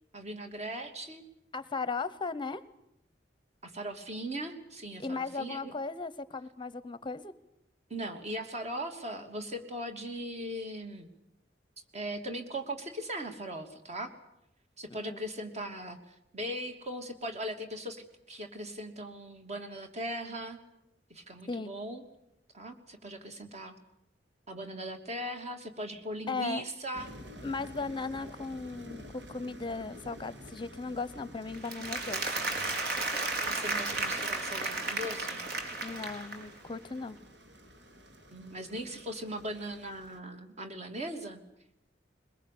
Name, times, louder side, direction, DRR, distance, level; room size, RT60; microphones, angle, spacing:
voice 1, 0.1-1.2 3.6-5.7 7.9-11.1 11.9-14.1 14.8-20.6 21.1-22.0 22.5-23.8 24.5-27.1 33.3-35.4 38.3-41.4, right 1 dB, 40° right, 5 dB, 2.9 m, -39 dB
voice 2, 1.5-2.6 5.0-7.3 14.9-15.2 21.5-21.7 26.3-26.6 27.4-32.3 35.8-37.2, left 4 dB, 25° left, 15 dB, 0.8 m, -37 dB
sound 1, 26.9-40.2, equal, 80° right, 3.0 m, -50 dB
Applause, 31.5-36.6, right 2 dB, 60° right, 4.1 m, -33 dB
22.0 x 21.5 x 8.6 m, 0.83 s
head